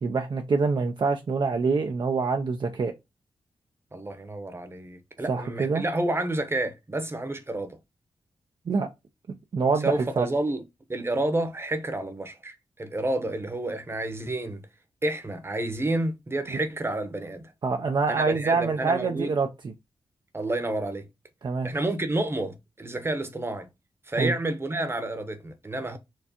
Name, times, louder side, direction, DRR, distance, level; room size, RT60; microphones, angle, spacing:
voice 1, 0.0-2.9 5.3-5.8 8.7-8.9 9.5-10.3 16.5-16.6 17.6-19.7 21.4-21.7 24.2-24.3, right 4 dB, 55° right, 0.5 m, -25 dB
voice 2, 3.9-7.8 9.8-10.6 10.9-14.6 15.0-17.5 18.1-19.3 20.3-21.1 21.6-23.7 24.1-26.0, right 2 dB, 25° right, 0.9 m, -30 dB
4.4 x 2.3 x 2.9 m
cardioid pair, 55°, 9 cm